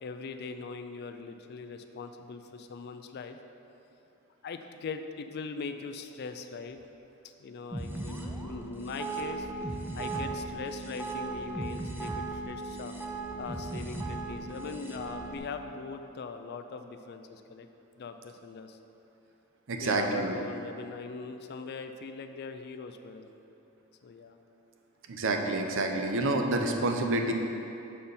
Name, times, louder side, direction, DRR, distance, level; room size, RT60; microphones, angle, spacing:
voice 1, 0.0-3.4 4.4-6.8 7.4-9.5 10.0-12.9 13.4-17.7 18.0-18.8 19.8-23.3 24.0-24.4, left 4 dB, 50° left, 7 dB, 0.4 m, -41 dB
sound 1, 7.7-15.4, right 2 dB, 10° right, 0.5 m, -37 dB
voice 2, 19.7-20.4 25.1-27.3, right 2 dB, 65° right, 3 dB, 0.6 m, -28 dB
6.5 x 4.3 x 5.5 m, 2.9 s
head